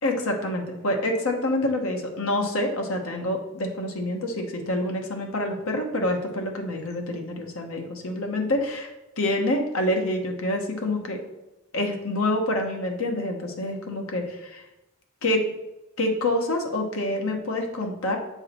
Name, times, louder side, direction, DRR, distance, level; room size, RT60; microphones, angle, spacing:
voice 1, 0.0-8.9 9.2-11.2 11.7-14.6 15.2-15.5 16.0-18.2, left 1 dB, 70° left, 3 dB, 1.1 m, -27 dB
7.8 x 4.8 x 4.3 m, 0.97 s
head